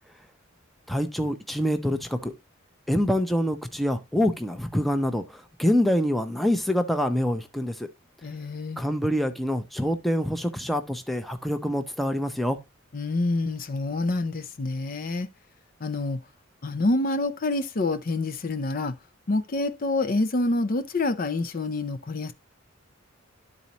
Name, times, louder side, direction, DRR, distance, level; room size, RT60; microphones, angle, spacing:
voice 1, 0.9-2.3 2.9-7.9 8.8-12.6, equal, ahead, 0.6 m, -26 dB
voice 2, 8.2-8.8 12.9-15.3 15.8-16.2 16.6-19.0 19.3-22.3, left 2 dB, 45° left, 0.5 m, -27 dB
12.0 x 4.1 x 2.9 m
head